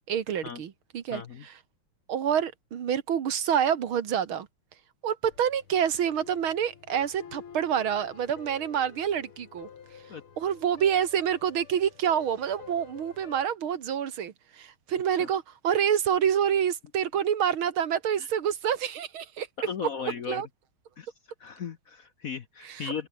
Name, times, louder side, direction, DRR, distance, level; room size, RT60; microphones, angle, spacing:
voice 1, 0.0-1.5 2.1-4.5 5.0-9.7 10.4-19.5 20.3-20.5 22.6-22.9, right 8 dB, 75° right, 2.3 m, -27 dB
voice 2, 1.1-1.4 10.1-10.2 15.2-15.3 18.2-18.3 19.7-20.4 21.0-21.1 21.4-23.1, left 6 dB, 55° left, 1.1 m, -36 dB
sound 1, 5.2-13.5, left 7 dB, 80° left, 2.9 m, -50 dB
omnidirectional pair, 2.3 m